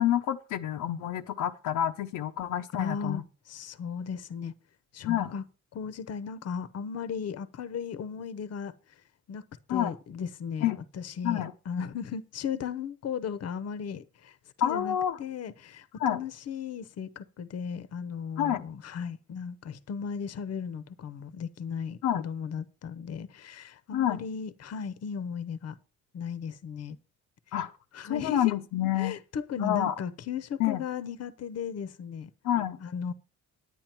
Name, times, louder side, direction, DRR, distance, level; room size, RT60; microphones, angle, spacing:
voice 1, 0.0-3.2 5.0-5.3 9.7-9.9 10.6-10.8 11.2-11.5 14.6-15.2 16.0-16.2 18.4-18.6 22.0-22.2 23.9-24.2 27.5-27.7 28.1-29.2 29.6-29.9 30.6-30.8 32.4-32.8, left 11 dB, 85° left, 0.7 m, -28 dB
voice 2, 2.7-3.2 3.5-4.5 4.9-5.4 5.7-8.7 9.3-9.4 9.7-10.7 10.9-14.3 14.6-25.8 26.1-27.0 27.9-28.6 29.0-32.3 32.8-33.1, left 6 dB, 55° left, 0.8 m, -36 dB
9.9 x 9.1 x 4.4 m
cardioid pair, 90°, 30 cm